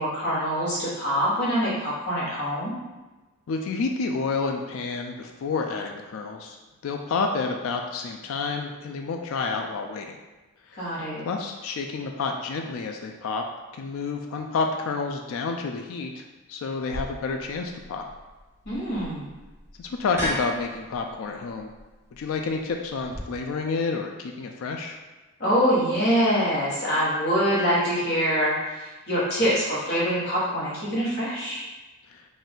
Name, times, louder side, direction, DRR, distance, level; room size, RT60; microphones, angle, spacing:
voice 1, 0.0-2.7 10.8-11.2 18.6-19.3 25.4-31.6, equal, 50° left, -9 dB, 1.3 m, -24 dB
voice 2, 3.5-6.6 6.8-10.2 11.2-13.4 13.7-16.2 16.5-18.0 19.8-21.7 22.1-25.0 32.1-32.3, left 4 dB, 65° left, 3 dB, 0.3 m, -29 dB
sound 1, 16.9-23.2, equal, 10° right, 1.0 m, -37 dB
4.1 x 2.5 x 3.7 m, 1.2 s
head